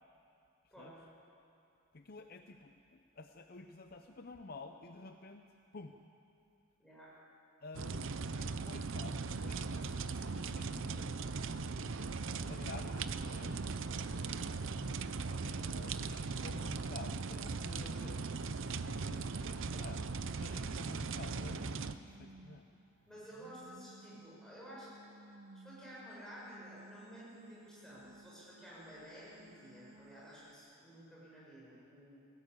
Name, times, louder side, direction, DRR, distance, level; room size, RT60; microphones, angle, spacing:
voice 1, 0.6-1.0 1.9-5.9 7.6-11.2 12.4-13.6 15.3-18.3 18.7-22.7, left 3 dB, 45° left, 6 dB, 0.7 m, -51 dB
voice 2, 6.8-7.1 13.8-14.2 23.1-25.1 25.6-32.2, equal, ahead, -7 dB, 7.0 m, -53 dB
sound 1, 7.7-21.9, right 4 dB, 60° right, 0.6 m, -39 dB
sound 2, 17.9-30.6, right 1 dB, 80° right, 1.4 m, -59 dB
18.5 x 17.0 x 8.4 m, 2.6 s
head